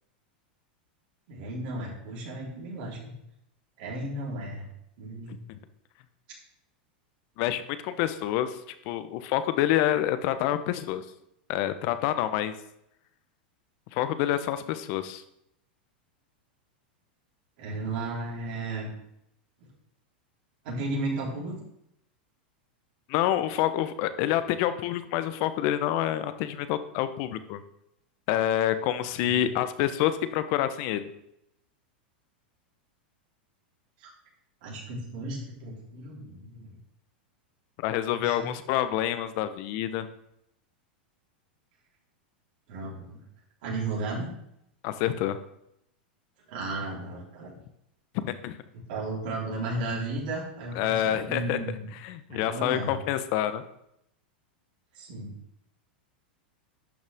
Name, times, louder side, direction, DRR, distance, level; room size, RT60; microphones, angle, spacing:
voice 1, 1.3-3.1 3.8-4.7 5.0-5.3 17.6-18.9 20.6-21.5 29.2-29.4 34.0-34.1 34.6-36.7 38.1-38.5 42.7-43.2 43.6-44.3 46.5-47.5 48.9-51.9 52.3-53.0 54.9-55.3, right 2 dB, 65° right, -4 dB, 4.1 m, -34 dB
voice 2, 7.4-8.6 8.9-11.0 11.5-12.5 13.9-15.2 23.1-27.6 28.3-31.1 37.8-40.1 44.8-45.4 48.1-48.6 50.7-51.6 52.0-53.6, left 12 dB, 55° left, 12 dB, 0.9 m, -27 dB
11.5 x 6.4 x 3.6 m, 0.79 s
hypercardioid pair, 110°, 5 cm